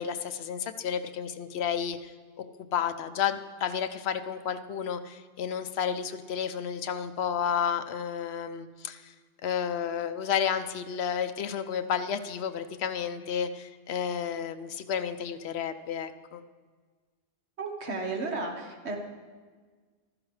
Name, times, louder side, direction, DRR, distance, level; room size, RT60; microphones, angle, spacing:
voice 1, 0.0-2.1 2.6-9.1 9.4-16.4, left 8 dB, 75° left, 10 dB, 0.9 m, -31 dB
voice 2, 17.6-19.0, right 3 dB, 85° right, 2 dB, 1.6 m, -33 dB
14.5 x 12.5 x 3.2 m, 1.5 s
omnidirectional pair, 1.1 m